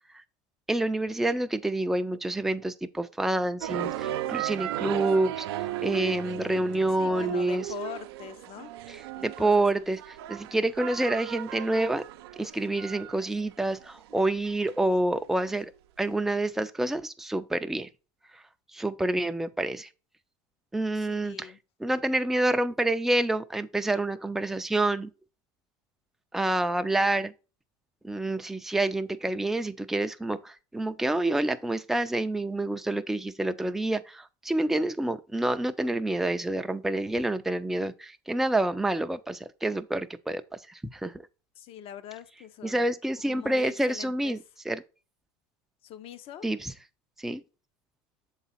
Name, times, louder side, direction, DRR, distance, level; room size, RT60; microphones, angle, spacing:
voice 1, 0.7-7.7 8.9-9.0 9.2-12.0 12.4-15.7 16.0-17.9 18.3-18.4 18.7-19.9 20.7-21.5 21.8-25.1 26.3-27.3 28.0-40.4 40.7-41.1 42.6-44.4 44.7-44.8 46.4-46.7 47.2-47.4, right 2 dB, 5° right, 0.4 m, -28 dB
sound 1, 3.6-14.8, right 13 dB, 85° right, 0.5 m, -35 dB
voice 2, 7.0-8.8 9.1-9.7 21.0-21.6 41.6-42.9 43.3-44.4 45.8-46.5, left 10 dB, 50° left, 0.8 m, -43 dB
7.1 x 4.1 x 4.1 m
supercardioid pair, 110°, 13 cm